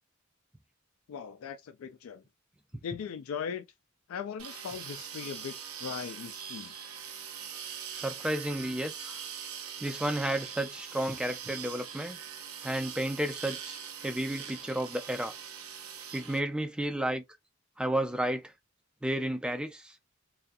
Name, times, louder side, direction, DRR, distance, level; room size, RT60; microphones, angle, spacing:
voice 1, 1.1-2.2 2.8-3.7 4.1-6.7, left 7 dB, 75° left, 0.3 m, -39 dB
sound 1, 4.4-16.4, right 8 dB, 80° right, 0.7 m, -42 dB
voice 2, 7.9-9.2 9.8-12.2 12.6-13.8 14.0-15.3 16.1-17.2 17.8-18.5 19.0-20.0, right 1 dB, 5° right, 0.3 m, -32 dB
2.6 x 2.3 x 2.4 m
head